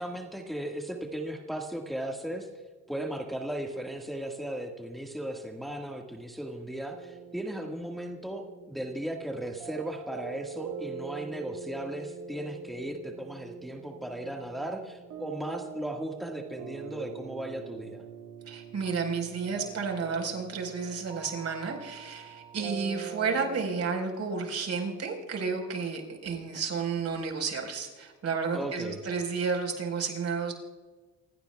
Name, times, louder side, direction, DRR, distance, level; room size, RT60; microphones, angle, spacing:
voice 1, 0.0-2.5 2.9-18.0 28.5-29.0, right 1 dB, ahead, 1 dB, 1.7 m, -36 dB
sound 1, 6.9-23.6, right 7 dB, 75° right, 1.9 m, -44 dB
voice 2, 18.5-30.5, right 5 dB, 55° right, 2 dB, 4.5 m, -32 dB
28.0 x 16.5 x 2.3 m, 1.4 s
cardioid pair, 90°, 30 cm